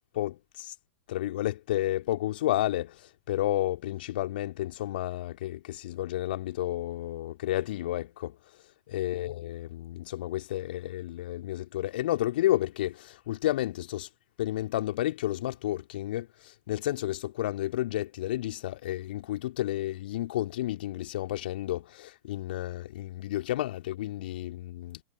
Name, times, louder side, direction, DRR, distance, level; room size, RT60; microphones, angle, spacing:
voice 1, 0.1-0.7 1.1-8.4 8.9-14.1 14.4-25.0, left 14 dB, 55° left, 2.7 m, -31 dB
figure-of-eight pair, 100°, 6 cm